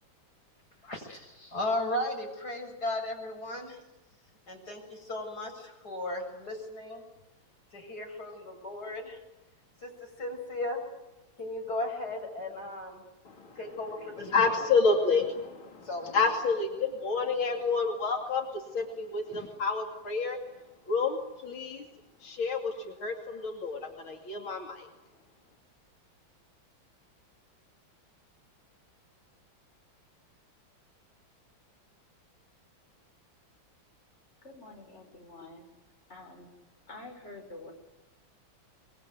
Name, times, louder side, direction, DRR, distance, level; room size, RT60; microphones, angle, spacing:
voice 1, 0.8-3.8 4.5-7.0 7.7-9.2 9.8-10.8 11.4-13.0 13.6-14.6 15.8-16.2, left 1 dB, 50° left, 3 dB, 7.5 m, -36 dB
voice 2, 13.2-13.6 14.2-20.4 20.9-21.9 22.2-24.9, left 4 dB, 85° left, 3 dB, 3.4 m, -29 dB
voice 3, 34.4-35.7 36.1-36.5 36.9-37.7, left 2 dB, 30° left, 3 dB, 6.2 m, -47 dB
25.5 x 22.0 x 9.4 m, 1.0 s
omnidirectional pair, 2.2 m